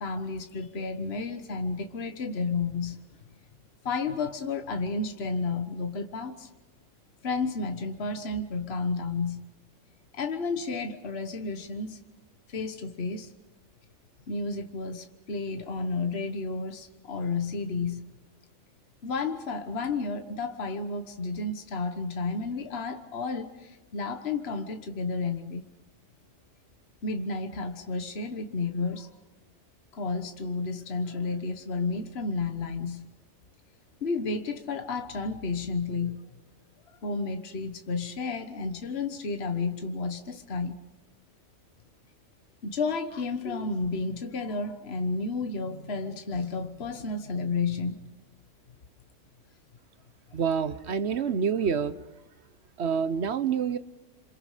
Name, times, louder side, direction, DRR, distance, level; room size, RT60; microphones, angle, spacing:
voice 1, 0.0-3.0 3.8-6.5 7.2-9.4 10.1-12.0 12.5-13.3 14.3-18.1 19.0-25.7 27.0-29.1 29.9-33.0 34.0-36.3 37.0-40.7 42.6-48.1, left 4 dB, 55° left, 1.5 m, -32 dB
voice 2, 50.3-52.0 52.8-53.8, right 7 dB, 60° right, 1.2 m, -27 dB
27.5 x 27.0 x 5.1 m
omnidirectional pair, 1.3 m